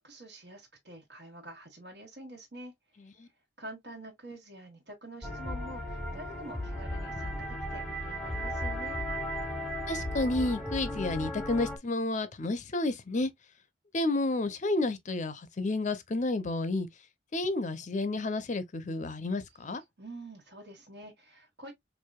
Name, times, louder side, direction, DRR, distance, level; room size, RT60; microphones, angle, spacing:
voice 1, 0.0-2.7 3.6-9.0 20.0-21.7, right 1 dB, 60° right, 1.4 m, -47 dB
sound 1, 5.2-11.8, equal, ahead, 0.9 m, -35 dB
voice 2, 9.9-13.3 13.9-16.9 17.3-19.8, left 2 dB, 40° left, 0.6 m, -31 dB
4.7 x 2.6 x 2.3 m
head